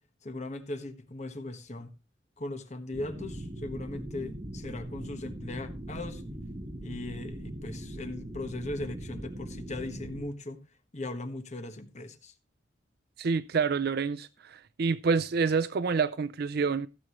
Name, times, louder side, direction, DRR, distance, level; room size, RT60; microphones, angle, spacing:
voice 1, 0.2-1.9 2.4-6.2 6.8-10.6 10.9-12.3, left 2 dB, 40° left, 1.4 m, -38 dB
sound 1, 2.9-10.2, right 1 dB, 30° right, 1.4 m, -40 dB
voice 2, 13.2-16.9, right 5 dB, 55° right, 0.4 m, -28 dB
16.0 x 7.8 x 3.1 m
head